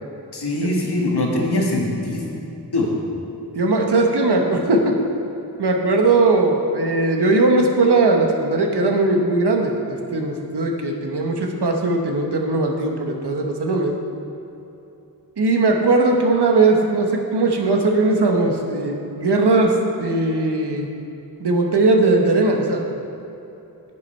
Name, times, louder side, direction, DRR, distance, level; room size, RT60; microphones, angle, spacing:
voice 1, 0.3-2.3 2.7-2.9, left 1 dB, 75° left, -2 dB, 1.7 m, -22 dB
voice 2, 3.5-4.9 5.6-9.8 10.1-13.9 15.4-20.9 21.4-22.8, right 2 dB, 75° right, 1 dB, 1.1 m, -19 dB
9.7 x 7.8 x 4.4 m, 2.9 s
wide cardioid pair, 65°, 40 cm